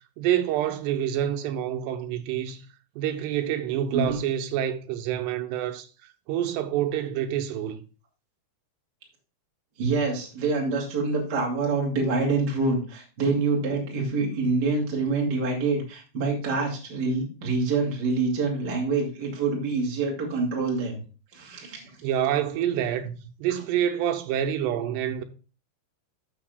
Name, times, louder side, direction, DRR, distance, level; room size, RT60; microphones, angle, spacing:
voice 1, 0.2-2.6 3.0-5.9 6.3-7.8 22.0-25.2, right 10 dB, 80° right, 2.9 m, -27 dB
voice 2, 9.8-21.0 21.3-21.8, right 3 dB, 30° right, 2.2 m, -26 dB
13.5 x 6.4 x 2.3 m
omnidirectional pair, 5.0 m